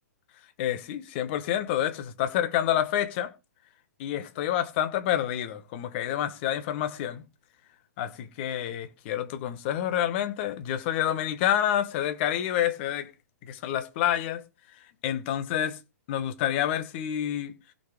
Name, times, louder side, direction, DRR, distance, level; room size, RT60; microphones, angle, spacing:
voice 1, 0.6-3.3 4.0-7.2 8.0-13.1 13.5-14.4 15.0-15.8 16.1-17.5, left 11 dB, 40° left, 1.7 m, -28 dB
16.0 x 5.5 x 5.3 m
figure-of-eight pair, 120°, 9 cm